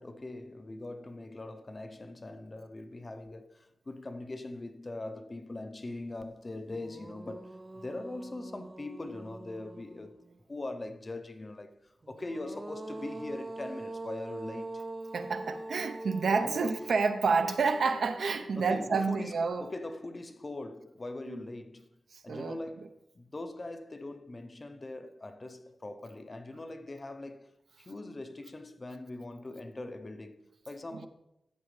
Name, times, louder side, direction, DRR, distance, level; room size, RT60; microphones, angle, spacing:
voice 1, 0.0-10.2 10.5-14.9 16.4-16.8 18.6-21.9 22.2-31.1, left 2 dB, 25° left, 0.6 m, -42 dB
sound 1, 6.2-6.3 6.7-10.4 12.0-19.3, right 2 dB, 20° right, 0.3 m, -44 dB
voice 2, 15.1-19.7 21.3-21.4 22.1-22.6 30.9-31.1, right 4 dB, 70° right, 0.7 m, -29 dB
13.0 x 8.2 x 3.2 m
wide cardioid pair, 165°, 0 cm